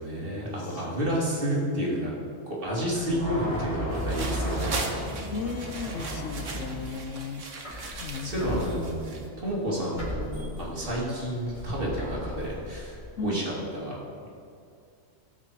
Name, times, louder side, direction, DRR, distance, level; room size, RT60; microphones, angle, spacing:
voice 1, 0.0-2.1 2.4-4.9 7.7-9.1 9.4-14.0, equal, 45° right, -5 dB, 2.7 m, -30 dB
voice 2, 0.9-1.9 3.1-3.3 5.3-7.4 8.0-8.7 13.2-13.4, left 4 dB, 70° left, 7 dB, 1.0 m, -36 dB
sound 1, 2.9-7.2 7.6-13.1, equal, 35° left, 3.7 m, -35 dB
sound 2, 3.9-9.3, right 3 dB, 70° right, 1.5 m, -38 dB
18.5 x 6.2 x 4.7 m, 2.4 s
omnidirectional pair, 1.4 m